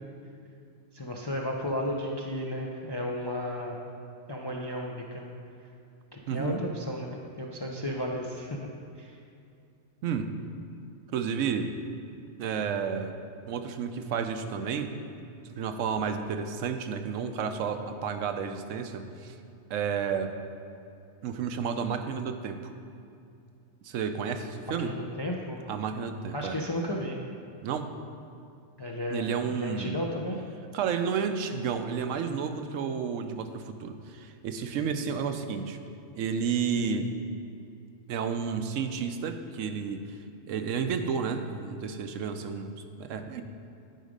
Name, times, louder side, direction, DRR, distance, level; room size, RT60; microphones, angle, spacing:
voice 1, 0.9-3.8 4.3-5.3 6.1-8.7 9.0-9.2 24.8-25.7 26.3-27.2 28.8-30.4, left 1 dB, 35° left, -1 dB, 0.4 m, -34 dB
voice 2, 6.3-6.6 10.0-10.3 11.1-11.7 12.4-13.1 13.5-14.9 15.6-19.4 19.7-20.3 21.2-22.7 23.8-24.9 25.7-26.6 27.6-27.9 29.1-30.0 30.7-35.8 36.1-37.1 38.1-40.0 40.4-43.4, right 6 dB, 75° right, 7 dB, 1.0 m, -31 dB
10.5 x 5.1 x 5.1 m, 2.5 s
omnidirectional pair, 1.3 m